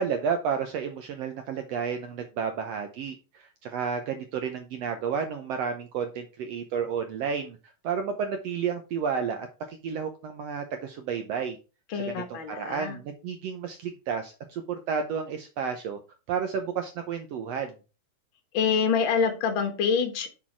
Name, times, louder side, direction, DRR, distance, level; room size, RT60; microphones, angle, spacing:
voice 1, 0.0-7.6 7.8-11.6 12.1-16.0 16.3-17.7, right 6 dB, 85° right, 6 dB, 1.4 m, -31 dB
voice 2, 11.9-13.0 18.5-20.3, left 6 dB, 50° left, 6 dB, 1.6 m, -26 dB
6.3 x 5.9 x 4.5 m, 0.31 s
omnidirectional pair, 3.9 m